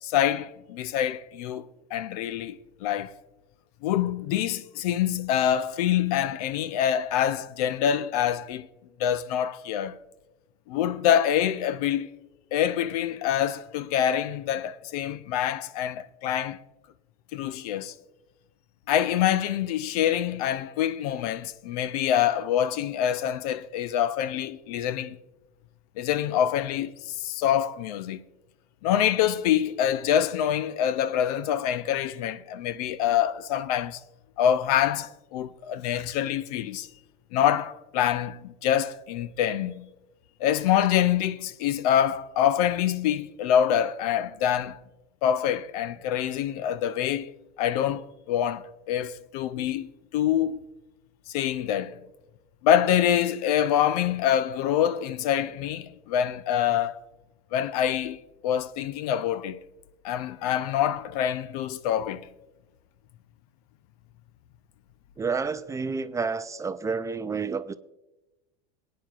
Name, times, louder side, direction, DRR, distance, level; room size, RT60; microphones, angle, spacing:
voice 1, 0.0-3.1 3.8-8.7 9.0-10.0 10.7-12.1 12.5-16.6 17.3-17.9 18.9-25.2 26.0-28.2 28.8-34.0 34.4-36.9 37.3-39.9 40.4-44.8 45.2-47.3 47.6-50.6 51.3-52.0 52.6-57.0 57.5-59.6 60.0-62.3, left 10 dB, 75° left, 0.6 m, -25 dB
voice 2, 65.2-67.7, right 5 dB, 15° right, 0.4 m, -29 dB
22.0 x 9.3 x 2.4 m
supercardioid pair, 105°, 20 cm